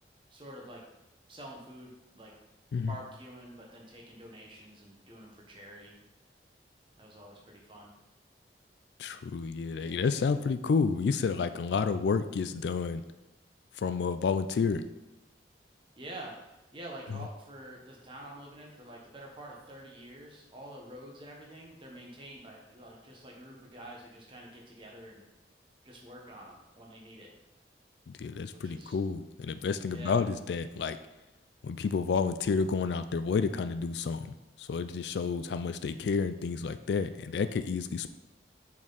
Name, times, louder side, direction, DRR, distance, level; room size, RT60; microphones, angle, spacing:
voice 1, 0.3-0.8 1.3-2.3 2.9-6.0 7.0-7.9 9.7-10.0 16.0-25.2 25.8-27.3 28.5-29.0 29.9-30.2, right 1 dB, 30° right, -1 dB, 1.2 m, -47 dB
voice 2, 9.0-13.0 13.8-14.8 28.2-31.0 31.6-38.1, left 5 dB, 75° left, 10 dB, 0.3 m, -30 dB
5.9 x 4.4 x 3.9 m, 0.97 s
head